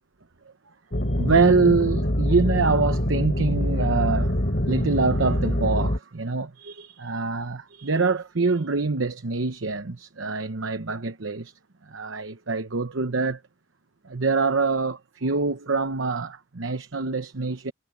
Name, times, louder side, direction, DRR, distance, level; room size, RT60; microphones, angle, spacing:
sound 1, 0.9-6.0, equal, 50° left, 4.0 m, -24 dB
voice 1, 1.1-11.5 11.9-13.4 14.0-17.7, right 4 dB, 70° right, 1.0 m, -25 dB
head